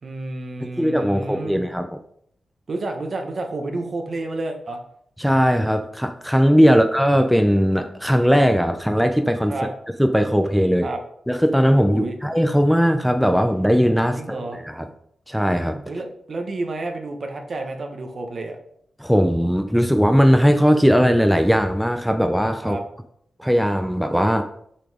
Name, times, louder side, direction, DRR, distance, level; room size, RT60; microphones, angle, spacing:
voice 1, 0.0-1.6 2.7-4.8 9.5-9.7 10.8-11.0 11.9-12.2 14.1-14.6 15.8-18.6 22.6-22.8, right 2 dB, 55° right, 4 dB, 1.2 m, -30 dB
voice 2, 0.8-2.0 5.2-9.5 10.0-10.9 11.3-14.9 15.3-15.8 19.0-22.8 23.4-24.5, equal, ahead, 6 dB, 0.6 m, -18 dB
7.0 x 5.7 x 3.6 m, 0.69 s
cardioid pair, 70°, 0 cm